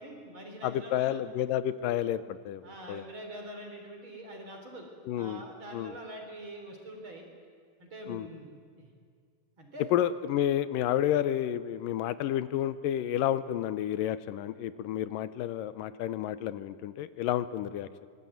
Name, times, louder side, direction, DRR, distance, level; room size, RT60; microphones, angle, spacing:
voice 1, 0.0-1.2 2.6-4.9 5.1-7.3 7.8-8.5 8.8-8.9 9.6-9.9, right 1 dB, 35° right, 3 dB, 4.7 m, -44 dB
voice 2, 0.6-3.0 5.1-5.4 5.7-5.9 8.1-8.3 9.9-17.9, left 11 dB, 85° left, 14 dB, 2.5 m, -30 dB
25.0 x 20.5 x 9.4 m, 2.1 s
omnidirectional pair, 3.9 m